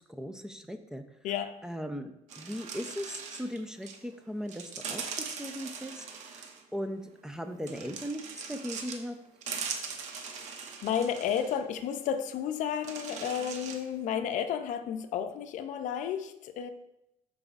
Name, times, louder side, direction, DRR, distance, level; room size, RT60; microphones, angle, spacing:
voice 1, 0.1-1.0 1.6-2.1 2.4-6.0 6.3-6.4 6.7-9.2, equal, 5° right, 0.5 m, -38 dB
voice 2, 1.2-1.6 9.7-10.5 10.8-16.7, left 8 dB, 75° left, 0.5 m, -32 dB
sound 1, 2.3-4.0 4.5-6.6 7.7-9.1 9.4-11.6 12.1-12.2 12.8-13.9, right 6 dB, 65° right, 0.9 m, -40 dB
13.0 x 4.7 x 2.5 m
cardioid pair, 125°, 13 cm